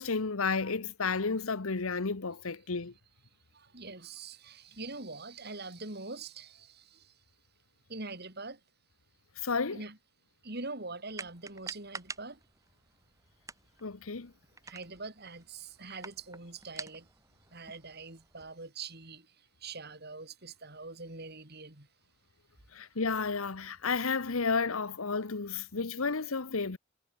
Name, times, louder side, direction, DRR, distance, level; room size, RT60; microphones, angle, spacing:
voice 1, 0.0-2.9 9.4-9.8 13.8-14.3 22.7-26.8, left 4 dB, 80° left, 1.1 m, -32 dB
voice 2, 3.5-7.1 7.9-8.6 9.7-10.0 10.4-12.4 14.6-17.1 17.5-19.3 19.6-21.9, right 3 dB, 50° right, 4.3 m, -43 dB
sound 1, 11.1-18.5, right 3 dB, 15° right, 5.1 m, -49 dB
head